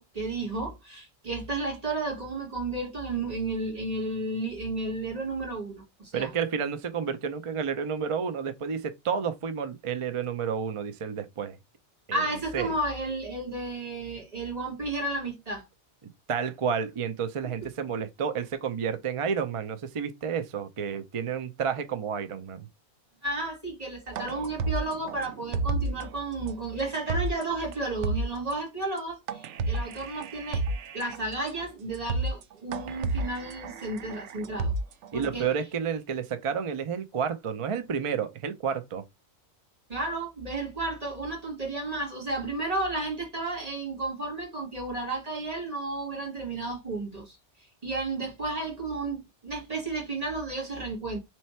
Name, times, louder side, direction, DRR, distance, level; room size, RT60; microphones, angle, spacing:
voice 1, 0.0-6.3 12.1-15.7 23.2-30.7 30.9-34.7 35.1-35.5 39.9-47.4 47.8-51.2, right 2 dB, 35° right, 1.9 m, -32 dB
voice 2, 6.1-11.6 12.1-12.2 12.5-12.8 16.3-22.7 35.1-39.0, right 7 dB, 55° right, 0.3 m, -30 dB
sound 1, 24.1-26.1 26.5-26.6 26.9-27.4 27.7-27.8 28.0-28.5 29.3-31.2 31.6-31.7 31.9-32.4 32.7-35.2, right 2 dB, 90° right, 0.9 m, -31 dB
3.2 x 3.1 x 4.2 m
omnidirectional pair, 1.2 m